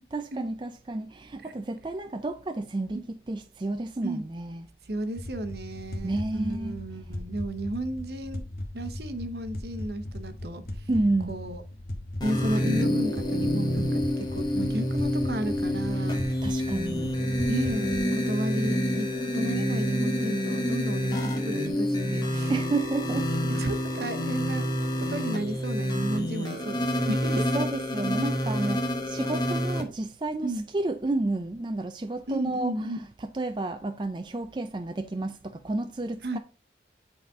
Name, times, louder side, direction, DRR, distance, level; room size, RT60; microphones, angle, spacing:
voice 1, 0.1-4.7 6.0-6.8 10.9-11.3 16.4-17.1 22.5-23.3 27.3-32.9 33.3-36.4, right 2 dB, 25° right, 0.4 m, -31 dB
voice 2, 4.9-8.4 8.7-10.9 11.3-11.6 12.2-16.4 16.9-22.5 23.4-24.7 25.0-27.4 30.4-30.7 32.3-33.0 36.2-36.4, right 1 dB, 65° right, 0.9 m, -33 dB
sound 1, 5.2-18.1, left 1 dB, 60° left, 1.2 m, -38 dB
sound 2, 12.2-29.8, equal, 25° left, 1.2 m, -28 dB
9.3 x 4.1 x 3.6 m
head